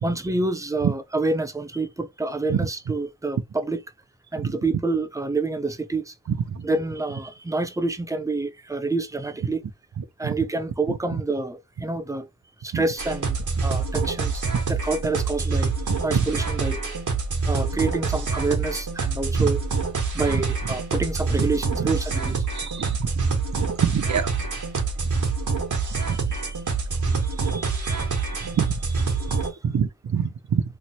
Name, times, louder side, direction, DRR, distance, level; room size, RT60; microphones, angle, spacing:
voice 1, 0.0-3.8 4.3-6.1 6.6-9.7 10.2-12.3 12.6-14.4 14.7-15.7 16.0-17.0 17.4-19.6 20.1-22.4 26.0-26.6 27.0-28.5 29.1-29.5, right 3 dB, 10° right, 0.5 m, -28 dB
sound 1, 13.0-29.5, right 4 dB, 85° right, 1.0 m, -26 dB
voice 2, 22.6-23.1 23.8-24.3 26.1-26.2 27.5-27.6 28.5-28.8 29.6-30.6, right 7 dB, 70° right, 0.5 m, -25 dB
3.1 x 2.1 x 4.1 m
wide cardioid pair, 70°, 30 cm